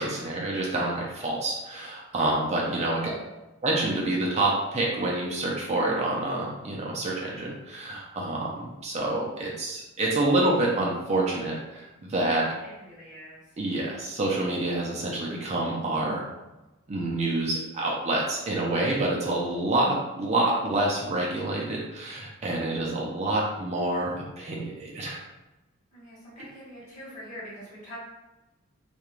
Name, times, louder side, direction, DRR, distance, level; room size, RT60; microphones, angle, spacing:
voice 1, 0.0-3.1 3.6-12.5 13.6-16.2 16.9-25.2, right 2 dB, 35° right, -3 dB, 0.4 m, -27 dB
voice 2, 2.9-3.3 12.4-13.4 25.9-28.0, equal, 40° left, -8 dB, 1.1 m, -44 dB
2.4 x 2.2 x 3.0 m, 1.0 s
head